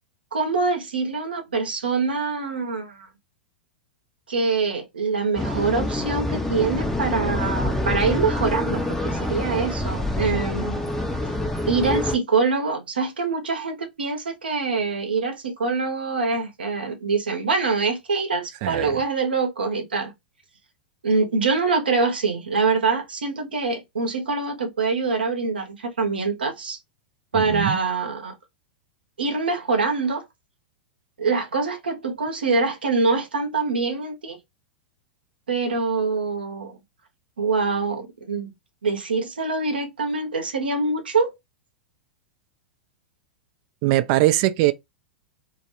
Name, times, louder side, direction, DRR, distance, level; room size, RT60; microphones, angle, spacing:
voice 1, 0.3-3.1 4.3-10.8 11.7-20.1 21.0-26.8 27.3-28.3 29.2-30.2 31.2-34.4 35.5-36.8 37.4-38.5 38.8-41.3, right 4 dB, 80° right, 0.7 m, -24 dB
sound 1, 5.4-12.2, left 1 dB, 5° left, 0.5 m, -26 dB
voice 2, 18.6-19.0 27.3-27.8 43.8-44.7, right 16 dB, 45° right, 0.3 m, -21 dB
2.2 x 2.1 x 2.9 m
figure-of-eight pair, 95°, 5 cm